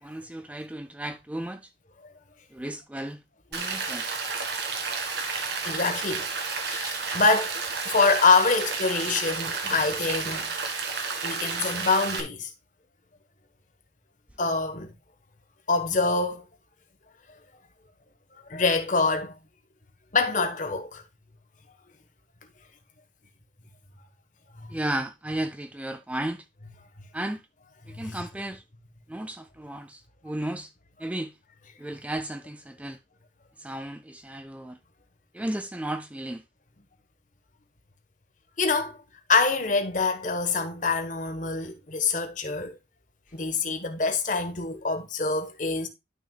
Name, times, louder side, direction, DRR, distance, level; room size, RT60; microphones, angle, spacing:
voice 1, 0.0-1.7 2.5-3.2 3.5-4.2 24.7-26.5 27.1-27.4 27.9-28.6 29.1-30.7 31.0-31.4 31.8-33.0 33.6-34.8 35.3-36.4, right 1 dB, 5° right, 0.4 m, -34 dB
Rain, 3.5-12.2, right 4 dB, 60° right, 1.9 m, -31 dB
voice 2, 5.6-6.3 6.6-7.6 7.8-10.5 11.2-12.5 14.4-14.9 15.7-16.4 18.3-19.4 20.1-21.0 28.0-28.2 38.6-39.0 39.3-42.8 43.3-45.9, left 4 dB, 45° left, 1.3 m, -25 dB
11.5 x 6.2 x 2.3 m
head